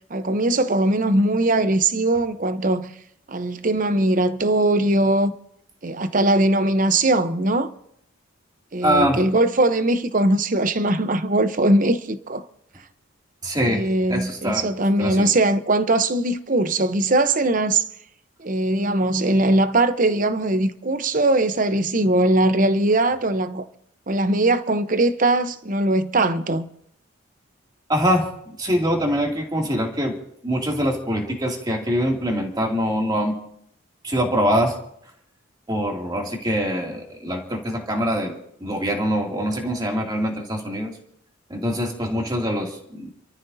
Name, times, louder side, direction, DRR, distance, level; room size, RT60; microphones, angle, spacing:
voice 1, 0.1-2.9 3.3-5.3 5.8-7.7 8.7-12.4 13.6-17.8 18.4-23.6 24.1-26.7, right 2 dB, 40° right, 0.8 m, -20 dB
voice 2, 8.8-9.2 13.4-14.7 15.0-15.3 27.9-28.3 28.6-30.2 30.4-33.4 34.0-34.8 35.7-40.9 41.5-43.2, equal, 20° right, 2.6 m, -24 dB
30.0 x 13.5 x 2.7 m
head